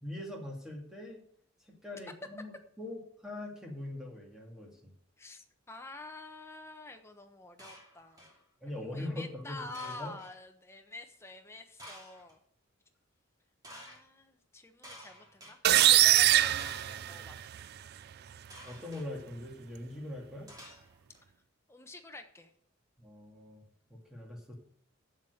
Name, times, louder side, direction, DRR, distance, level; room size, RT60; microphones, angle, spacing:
voice 1, 0.0-1.2 1.6-4.9 8.6-10.1 18.6-20.5 23.0-23.6 23.9-24.5, left 1 dB, 5° right, -1 dB, 2.4 m, -42 dB
voice 2, 5.2-8.2 8.7-12.4 13.7-17.8 21.7-22.5, left 2 dB, 15° left, 5 dB, 1.1 m, -48 dB
sound 1, 7.6-8.4 9.7-10.4 11.8-12.3 13.6-14.0 14.8-15.5 16.6-17.1 18.5-19.1 20.5-21.2, equal, 20° right, 2.7 m, -51 dB
sound 2, 15.6-17.6, right 14 dB, 50° right, 0.3 m, -23 dB
7.5 x 7.3 x 7.9 m, 0.63 s
head